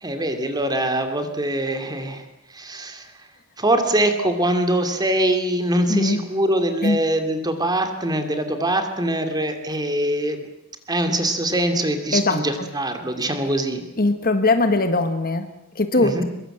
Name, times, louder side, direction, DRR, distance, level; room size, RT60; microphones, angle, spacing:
voice 1, 0.0-2.2 2.5-3.1 3.6-10.4 10.9-13.8 16.0-16.2, right 1 dB, 20° right, 6 dB, 2.6 m, -23 dB
voice 2, 5.9-6.2 6.8-7.0 12.1-12.5 14.0-16.2, left 2 dB, 40° left, 9 dB, 1.6 m, -20 dB
23.0 x 22.0 x 8.0 m, 0.91 s
head